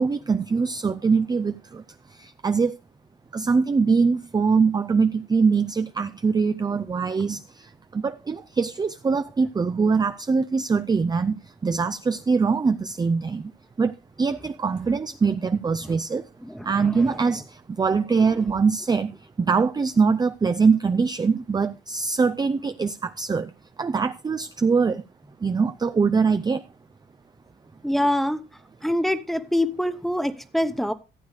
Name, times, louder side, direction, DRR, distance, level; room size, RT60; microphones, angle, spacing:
voice 1, 0.0-1.8 2.4-2.8 3.3-7.4 8.0-11.3 11.6-13.4 13.8-13.9 14.2-16.2 16.7-17.4 17.8-19.1 19.5-23.5 23.8-25.0 25.4-26.6, right 5 dB, 20° right, 0.5 m, -22 dB
voice 2, 16.4-17.2 27.8-28.4 28.8-30.9, left 1 dB, ahead, 1.1 m, -25 dB
15.0 x 7.9 x 3.3 m
cardioid pair, 90°, 20 cm